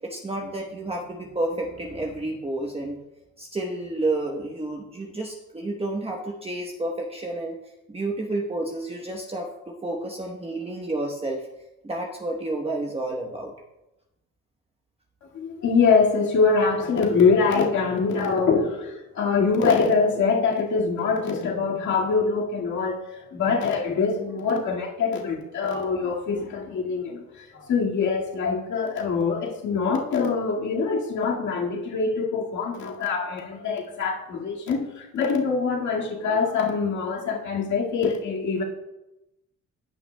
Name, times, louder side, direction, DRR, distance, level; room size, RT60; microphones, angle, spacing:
voice 1, 0.0-3.0 3.4-7.6 7.9-11.4 11.8-13.5, right 2 dB, 20° right, 0 dB, 1.1 m, -30 dB
voice 2, 15.3-38.6, left 5 dB, 70° left, -2 dB, 2.0 m, -24 dB
16.5 x 6.0 x 2.2 m, 0.96 s
cardioid pair, 90°, 30 cm